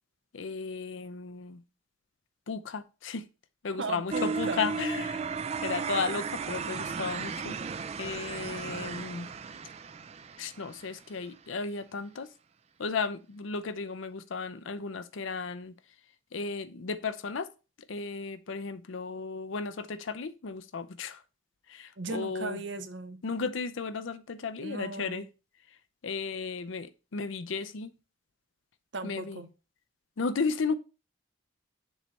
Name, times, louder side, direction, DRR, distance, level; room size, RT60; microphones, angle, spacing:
voice 1, 0.3-1.6 2.5-3.3 3.6-5.3 5.6-7.6 8.0-9.3 10.4-12.3 12.8-15.7 16.3-17.5 17.9-21.2 21.7-22.6 23.2-25.3 26.0-27.9 29.0-29.4 30.2-30.7, left 4 dB, 75° left, 0.5 m, -34 dB
voice 2, 3.8-4.7 22.0-23.2 24.6-25.3 28.9-29.5, right 3 dB, 65° right, 0.7 m, -37 dB
sound 1, 4.1-11.0, right 5 dB, 30° right, 0.3 m, -35 dB
7.0 x 3.2 x 5.4 m
head